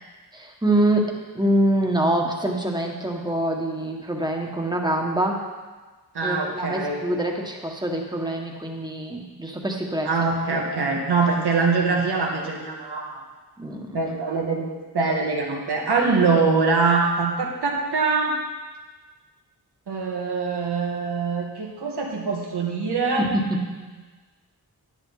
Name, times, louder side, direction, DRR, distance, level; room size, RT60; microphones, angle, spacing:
voice 1, 0.3-5.5 6.2-10.1 13.6-14.0 23.2-23.8, right 1 dB, 10° right, 1 dB, 1.7 m, -25 dB
voice 2, 6.1-7.0 10.0-13.2 13.9-18.4 19.9-23.3, right 4 dB, 85° right, -1 dB, 2.0 m, -23 dB
10.5 x 9.9 x 4.1 m, 1.3 s
cardioid pair, 65°, 39 cm